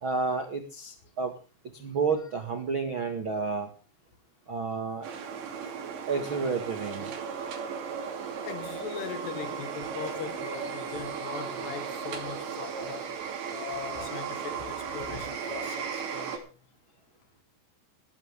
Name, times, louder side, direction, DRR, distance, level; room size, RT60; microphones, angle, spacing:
voice 1, 0.0-1.3 1.7-3.7 4.5-5.1 6.1-7.1, right 4 dB, 85° right, 1.1 m, -30 dB
sound 1, 5.0-16.4, right 6 dB, 65° right, 4.9 m, -36 dB
voice 2, 8.4-13.2 13.5-16.5, left 8 dB, 65° left, 3.4 m, -40 dB
19.5 x 14.0 x 3.6 m
omnidirectional pair, 5.7 m